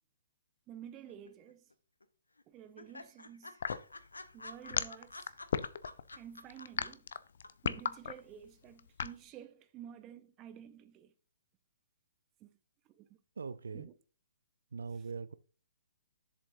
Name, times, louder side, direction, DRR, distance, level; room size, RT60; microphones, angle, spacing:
voice 1, 0.7-1.6 2.5-3.6 4.3-5.3 6.2-7.1 7.6-11.1 12.4-12.5 12.9-13.2 13.7-13.9 14.9-15.1, right 10 dB, 25° right, 0.7 m, -51 dB
sound 1, 1.1-1.7 2.0-2.1 2.4-2.5 2.8-7.1 7.4-7.5, left 2 dB, 80° left, 0.9 m, -48 dB
sound 2, 3.6-9.2, left 7 dB, 55° left, 0.5 m, -35 dB
voice 2, 13.4-13.9 14.7-15.3, right 5 dB, 70° right, 0.4 m, -41 dB
7.6 x 7.2 x 2.7 m
figure-of-eight pair, 125°, 0 cm